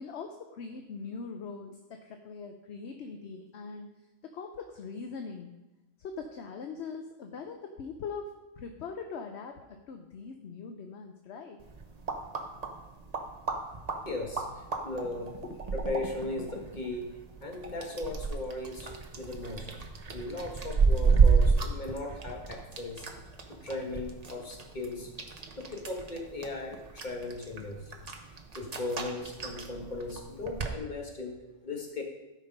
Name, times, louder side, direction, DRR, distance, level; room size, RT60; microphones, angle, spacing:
voice 1, 0.0-3.9 4.2-5.5 6.0-11.6 15.4-15.6, left 5 dB, 60° left, 5 dB, 0.9 m, -41 dB
sound 1, 11.6-30.8, right 5 dB, 35° right, 0.8 m, -32 dB
voice 2, 14.0-15.4 15.7-17.1 17.4-18.9 19.2-19.7 20.1-23.1 23.5-25.1 25.6-27.8 28.5-32.0, left 2 dB, 35° left, 1 dB, 1.7 m, -37 dB
12.5 x 5.3 x 5.3 m, 1.0 s
omnidirectional pair, 1.4 m